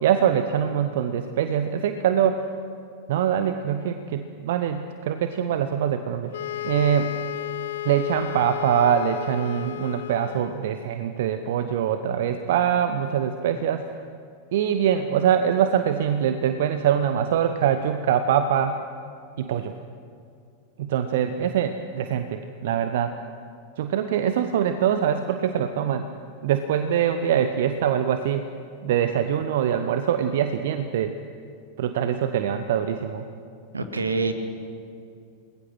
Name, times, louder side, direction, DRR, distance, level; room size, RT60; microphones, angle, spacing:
voice 1, 0.0-2.4 3.1-6.3 6.6-7.2 7.8-13.9 14.5-18.8 19.4-19.7 20.8-23.2 23.8-26.1 26.4-28.5 28.8-31.2 31.8-33.2, right 9 dB, 55° right, 9 dB, 1.0 m, -23 dB
sound 1, 6.3-10.7, left 14 dB, 60° left, 0.5 m, -33 dB
voice 2, 33.7-34.3, right 3 dB, 75° right, 7 dB, 2.1 m, -25 dB
29.0 x 21.0 x 6.2 m, 2.4 s
figure-of-eight pair, 90°, 0 cm